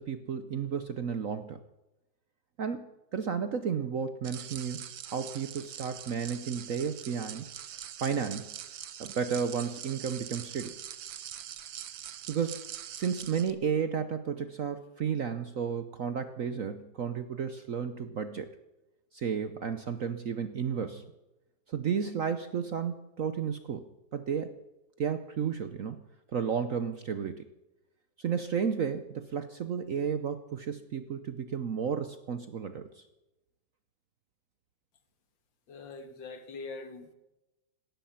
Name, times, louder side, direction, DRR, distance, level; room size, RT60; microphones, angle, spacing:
voice 1, 0.0-1.6 2.6-7.5 8.0-8.5 9.0-10.8 12.3-12.6 12.9-18.5 19.1-21.0 21.7-23.8 24.1-24.5 25.0-26.0 26.3-27.4 28.2-33.0, right 7 dB, 55° right, 0.9 m, -33 dB
sound 1, 4.2-13.5, right 11 dB, 75° right, 1.7 m, -43 dB
voice 2, 35.7-37.1, left 3 dB, 65° left, 2.2 m, -43 dB
17.5 x 13.0 x 5.7 m
omnidirectional pair, 2.2 m